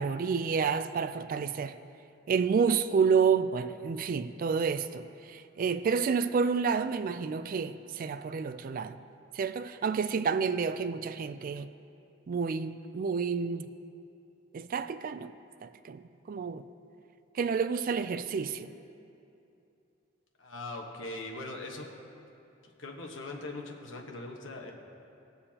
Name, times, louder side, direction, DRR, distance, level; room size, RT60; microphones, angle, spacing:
voice 1, 0.0-1.8 2.3-9.0 9.3-11.7 12.3-13.7 14.5-15.3 15.6-16.0 16.3-16.6 17.3-18.7, right 5 dB, 45° right, 0.3 m, -29 dB
voice 2, 20.4-21.9 22.8-24.7, left 2 dB, 80° left, 1.2 m, -40 dB
19.0 x 7.0 x 2.8 m
head